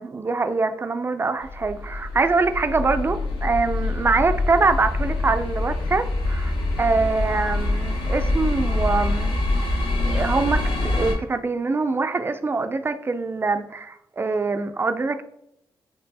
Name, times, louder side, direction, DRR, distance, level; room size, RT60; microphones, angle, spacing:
voice 1, 0.0-6.5 6.8-9.3 10.0-15.2, right 3 dB, 25° right, 0.4 m, -24 dB
sound 1, 1.4-11.1, left 2 dB, 85° left, 0.9 m, -25 dB
4.5 x 2.7 x 2.7 m
cardioid pair, 100°, 9 cm